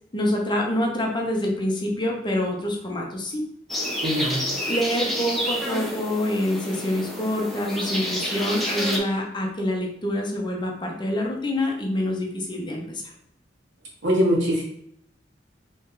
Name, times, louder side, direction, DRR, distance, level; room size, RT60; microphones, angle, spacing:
voice 1, 0.1-3.4 4.7-13.0, left 1 dB, 25° left, 0 dB, 0.9 m, -26 dB
sound 1, 3.7-9.0, equal, ahead, 0.8 m, -29 dB
voice 2, 4.0-4.4 14.0-14.6, equal, 90° right, -3 dB, 1.6 m, -22 dB
4.1 x 3.2 x 3.8 m, 0.70 s
head